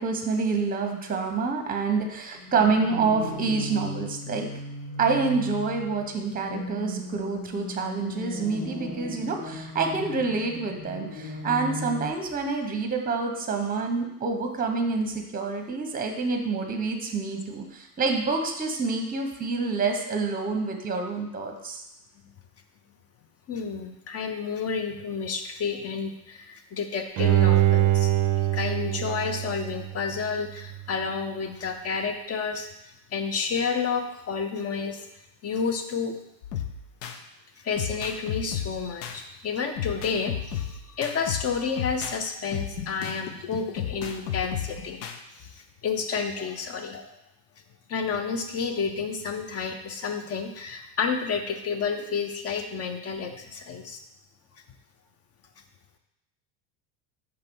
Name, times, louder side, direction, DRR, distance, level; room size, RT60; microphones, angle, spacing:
voice 1, 0.0-4.5 5.0-21.8, right 4 dB, 20° right, 4 dB, 0.9 m, -27 dB
sound 1, 2.4-12.1, left 1 dB, 70° left, 1.4 m, -36 dB
voice 2, 23.5-28.1 28.5-32.7 33.1-35.1 35.4-36.1 37.6-45.0 45.4-47.0 47.9-54.0, left 5 dB, 30° left, 6 dB, 0.7 m, -30 dB
Bowed string instrument, 27.2-30.3 30.7-30.8, right 14 dB, 40° right, 0.5 m, -23 dB
sound 2, 36.4-37.2 37.8-39.2 39.8-42.2 42.5-45.2, left 9 dB, 85° left, 0.8 m, -33 dB
5.7 x 3.4 x 5.4 m, 0.86 s
supercardioid pair, 115°, 47 cm